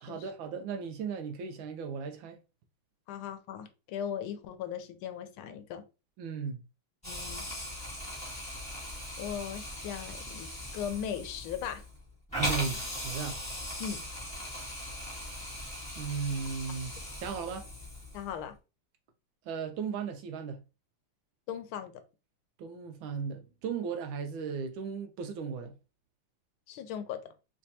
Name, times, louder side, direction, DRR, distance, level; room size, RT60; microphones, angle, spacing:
voice 1, 0.0-2.4 6.2-6.6 12.4-13.4 16.0-17.7 19.5-20.6 22.6-25.8, right 6 dB, 75° right, 1.3 m, -36 dB
voice 2, 3.1-5.8 7.0-7.4 9.2-11.8 13.8-14.0 18.1-18.6 21.5-22.0 26.7-27.2, left 8 dB, 80° left, 1.4 m, -38 dB
Hiss, 7.0-18.3, left 1 dB, 5° left, 1.7 m, -39 dB
3.3 x 3.3 x 2.7 m
omnidirectional pair, 2.4 m